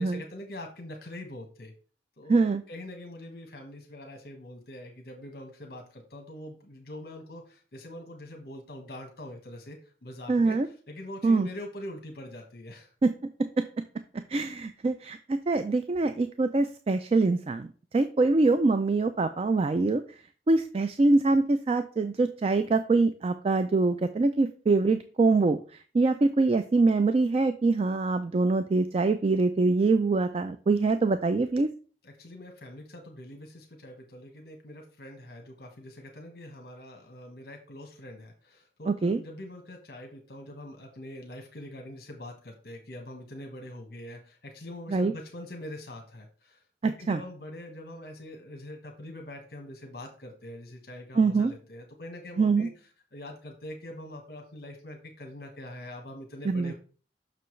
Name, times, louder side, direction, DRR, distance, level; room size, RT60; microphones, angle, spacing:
voice 1, 0.0-1.7 2.2-2.4 2.7-12.9 32.0-56.7, left 1 dB, 60° left, 3 dB, 1.2 m, -43 dB
voice 2, 2.3-2.6 10.3-10.7 11.2-11.5 13.0-13.1 13.6-13.7 14.3-17.7 17.9-20.0 20.5-31.7 38.9-39.2 44.9-45.1 47.1-47.2 51.1-51.5 52.4-52.7 56.5-56.7, right 3 dB, 35° right, 10 dB, 0.3 m, -24 dB
6.8 x 6.1 x 3.2 m, 0.40 s
head